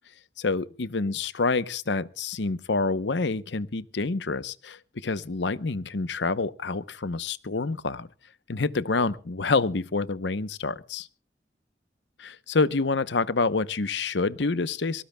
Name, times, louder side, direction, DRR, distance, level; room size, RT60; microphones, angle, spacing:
voice 1, 0.4-8.1 8.5-11.1 12.2-15.0, left 3 dB, 85° left, 0.8 m, -27 dB
23.0 x 18.5 x 2.2 m
head